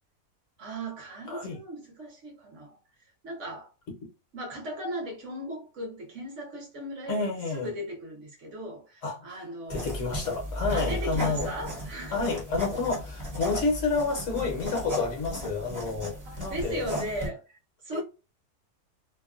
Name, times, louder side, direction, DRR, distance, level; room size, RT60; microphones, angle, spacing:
voice 1, 0.6-2.8 3.2-3.7 4.3-9.9 10.7-12.2 16.2-18.0, right 1 dB, 60° right, 1.1 m, -37 dB
voice 2, 1.3-1.6 7.1-7.7 9.0-9.3 9.7-11.5 12.1-16.8 17.9-18.0, left 4 dB, 60° left, 1.0 m, -29 dB
sound 1, 9.7-17.3, equal, 20° right, 0.5 m, -35 dB
2.8 x 2.2 x 2.3 m
omnidirectional pair, 1.5 m